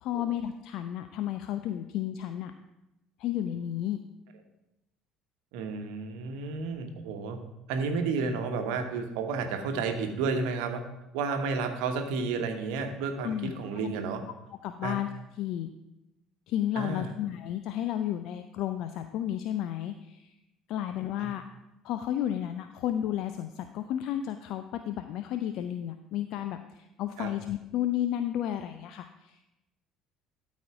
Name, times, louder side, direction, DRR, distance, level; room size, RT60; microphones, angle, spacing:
voice 1, 0.0-2.5 3.2-4.0 13.2-13.5 13.8-13.9 14.6-15.1 15.4-15.7 16.5-20.3 20.7-21.4 21.8-29.4, left 11 dB, 60° left, 9 dB, 0.4 m, -32 dB
voice 2, 5.5-7.4 7.7-10.8 11.1-14.2 14.8-15.0 16.7-17.1 21.2-21.3 27.2-27.3, right 4 dB, 65° right, 6 dB, 1.1 m, -31 dB
12.5 x 4.2 x 4.8 m, 0.93 s
figure-of-eight pair, 60°, 0 cm